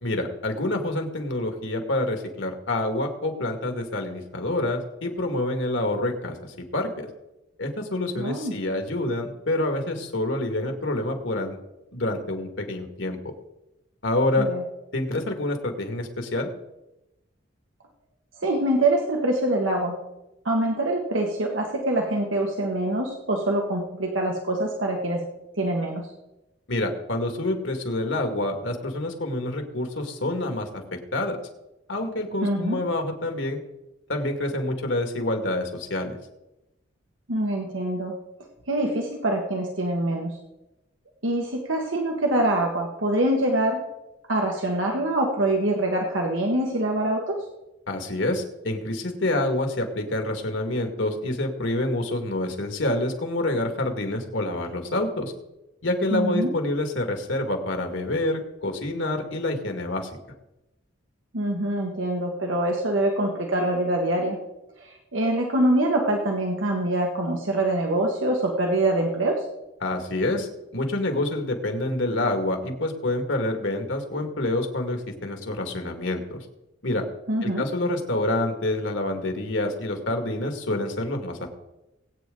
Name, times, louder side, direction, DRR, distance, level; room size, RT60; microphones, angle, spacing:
voice 1, 0.0-7.1 7.6-11.6 11.9-13.2 14.0-14.5 14.9-16.5 26.7-31.4 31.9-33.6 34.1-36.1 47.9-55.3 55.8-60.1 69.8-76.5 76.8-77.0 77.4-81.5, left 1 dB, 75° left, 4 dB, 2.1 m, -27 dB
voice 2, 8.2-8.6 14.4-14.6 18.4-20.0 20.4-25.2 25.5-26.1 32.4-32.8 37.3-38.2 38.7-40.3 41.2-43.8 44.3-47.4 56.1-56.5 61.3-64.4 64.8-69.5 77.3-77.7, right 1 dB, 85° right, 1 dB, 1.5 m, -24 dB
20.5 x 8.9 x 3.9 m, 0.95 s
head